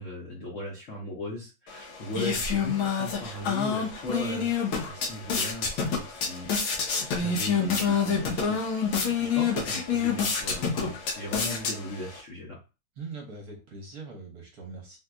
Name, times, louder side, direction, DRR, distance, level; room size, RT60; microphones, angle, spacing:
voice 1, 0.0-4.5 4.9-6.5 7.0-12.6, left 1 dB, 55° left, -3 dB, 0.8 m, -38 dB
sound 1, 1.7-12.2, left 6 dB, 90° left, 1.5 m, -28 dB
voice 2, 13.0-15.0, right 4 dB, 60° right, 0 dB, 1.2 m, -41 dB
3.8 x 2.7 x 2.3 m, 0.30 s
omnidirectional pair, 2.2 m